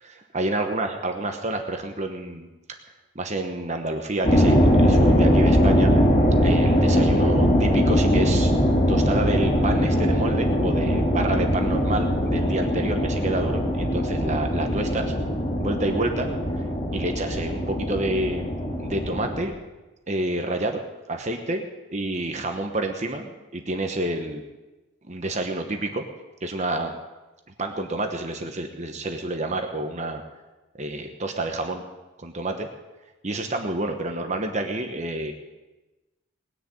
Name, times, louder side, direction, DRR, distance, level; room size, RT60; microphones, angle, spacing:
voice 1, 0.0-2.5 3.1-5.9 6.4-8.5 8.9-15.1 15.6-16.3 16.9-18.4 18.8-19.5 20.1-20.8 21.1-21.6 21.9-24.4 25.1-26.0 26.4-26.9 27.6-30.2 30.8-31.8 32.2-32.7 33.2-35.3, right 2 dB, 35° right, 4 dB, 1.1 m, -28 dB
sound 1, 4.2-19.4, equal, 30° left, 2.5 m, -21 dB
20.0 x 6.8 x 8.5 m, 1.1 s
head